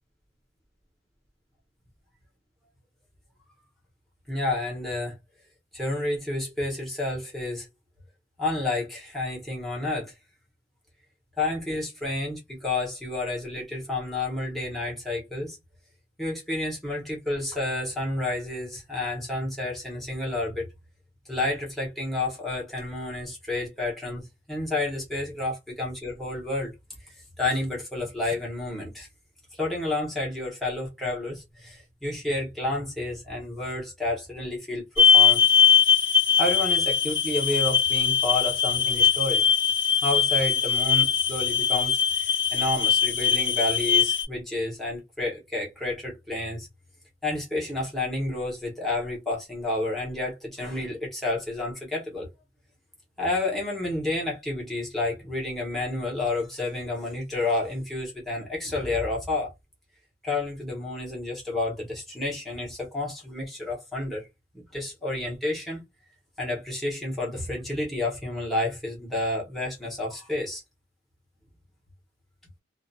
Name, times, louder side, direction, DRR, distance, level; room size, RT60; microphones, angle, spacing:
voice 1, 4.3-5.1 5.7-7.7 8.4-10.1 11.4-15.6 16.2-20.7 21.3-26.7 27.0-27.1 27.4-29.1 29.5-35.4 36.4-39.4 40.0-46.7 47.2-52.3 53.2-59.5 60.2-64.3 64.5-65.8 66.4-70.6, left 2 dB, ahead, 0.9 m, -30 dB
sound 1, 35.0-44.2, left 7 dB, 65° left, 1.2 m, -21 dB
2.4 x 2.1 x 2.6 m
head